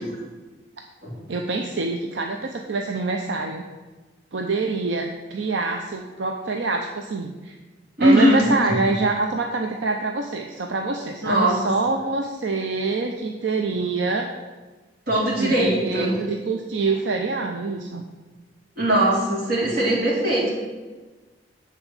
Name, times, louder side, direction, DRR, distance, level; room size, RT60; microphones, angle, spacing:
voice 1, 1.3-3.6 4.3-7.6 8.0-14.3 15.4-18.0, right 3 dB, 85° right, 3 dB, 0.6 m, -26 dB
voice 2, 8.0-8.4 11.2-11.6 15.1-16.2 18.8-20.5, right 1 dB, 60° right, -5 dB, 3.1 m, -20 dB
8.0 x 4.4 x 7.2 m, 1.3 s
head